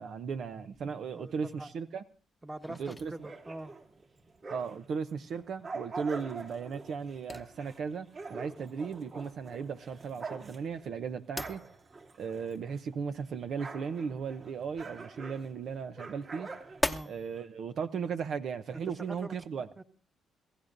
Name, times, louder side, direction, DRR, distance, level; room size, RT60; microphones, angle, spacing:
voice 1, 0.0-2.0 2.8-3.1 4.5-11.6 12.2-16.5 17.1-19.7, right 6 dB, 65° right, 0.7 m, -36 dB
sound 1, 0.7-17.4, left 1 dB, 10° left, 0.9 m, -43 dB
voice 2, 1.1-1.7 2.4-2.8 3.1-3.7 16.8-17.1 18.7-19.3 19.8-19.9, right 2 dB, 20° right, 1.4 m, -43 dB
sound 2, 3.1-4.9 5.3-12.9 13.2-17.4, right 4 dB, 45° right, 2.8 m, -45 dB
27.0 x 16.0 x 2.6 m
cardioid pair, 90°, 0 cm